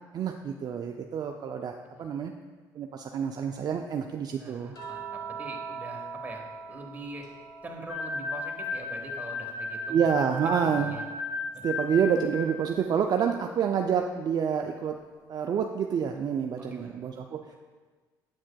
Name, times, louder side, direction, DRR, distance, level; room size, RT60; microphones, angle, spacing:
voice 1, 0.1-2.3 2.7-4.8 9.9-11.0 11.6-14.9 15.3-17.5, right 7 dB, 50° right, 4 dB, 0.4 m, -28 dB
voice 2, 4.4-7.3 7.6-10.1 10.6-11.0 11.5-11.6 16.6-17.0, right 2 dB, 20° right, 0 dB, 1.2 m, -43 dB
sound 1, 4.7-9.2 9.6-11.2 12.7-12.9, right 5 dB, 50° left, 1.3 m, -43 dB
sound 2, 7.9-12.8, left 3 dB, ahead, 0.9 m, -35 dB
7.9 x 6.1 x 2.2 m, 1.4 s
supercardioid pair, 75°, 9 cm